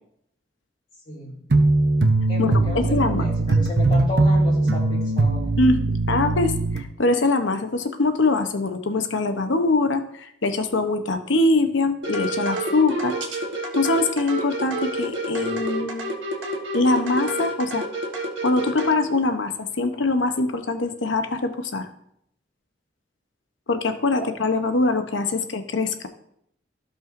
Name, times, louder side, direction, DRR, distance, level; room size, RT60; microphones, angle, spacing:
voice 1, 1.1-1.4 2.3-5.5 24.2-24.3, equal, 45° left, -8 dB, 2.7 m, -32 dB
sound 1, 1.5-6.8, right 2 dB, 65° right, 0.8 m, -20 dB
voice 2, 2.4-3.3 5.6-5.8 6.1-13.1 13.7-16.1 16.7-17.9 18.4-21.9 23.7-26.1, left 2 dB, 90° left, 8 dB, 0.9 m, -23 dB
sound 2, 12.0-18.9, right 1 dB, 85° right, 1.4 m, -29 dB
15.0 x 5.5 x 2.6 m, 0.72 s
head